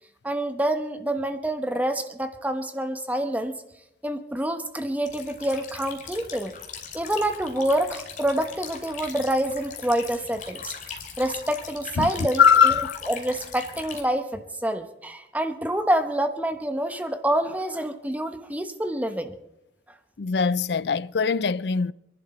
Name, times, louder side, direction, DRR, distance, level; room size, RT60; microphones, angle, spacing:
voice 1, 0.2-3.5 4.0-6.5 6.9-10.7 11.2-19.3, right 1 dB, 10° right, 1.1 m, -27 dB
sound 1, 5.1-14.0, left 6 dB, 45° left, 2.6 m, -40 dB
voice 2, 12.4-13.0 20.2-21.9, left 6 dB, 75° left, 0.5 m, -20 dB
27.0 x 11.0 x 4.3 m
head